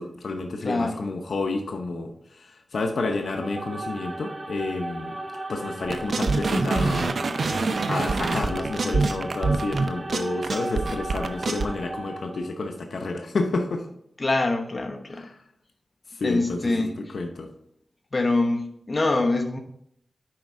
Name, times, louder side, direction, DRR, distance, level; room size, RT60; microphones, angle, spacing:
voice 1, 0.0-5.2 5.5-7.1 7.9-13.8 15.2-15.3 16.2-17.5, left 3 dB, 80° left, 4 dB, 0.7 m, -30 dB
voice 2, 0.6-1.0 14.2-15.3 16.2-17.1 18.1-19.6, left 2 dB, 45° left, 4 dB, 1.0 m, -25 dB
sound 1, 3.1-12.6, right 2 dB, 35° right, 1.0 m, -36 dB
sound 2, 5.9-11.7, right 3 dB, 70° right, 0.6 m, -25 dB
7.5 x 5.3 x 3.7 m, 0.71 s
cardioid pair, 60°, 0 cm